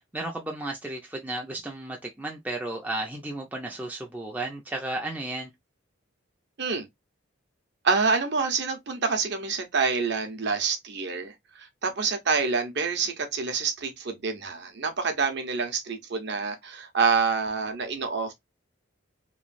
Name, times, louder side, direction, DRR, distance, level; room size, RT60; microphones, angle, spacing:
voice 1, 0.1-5.5, right 2 dB, 10° right, 0.4 m, -33 dB
voice 2, 7.8-11.3 11.8-18.3, right 5 dB, 55° right, 0.7 m, -27 dB
3.1 x 2.3 x 2.5 m
head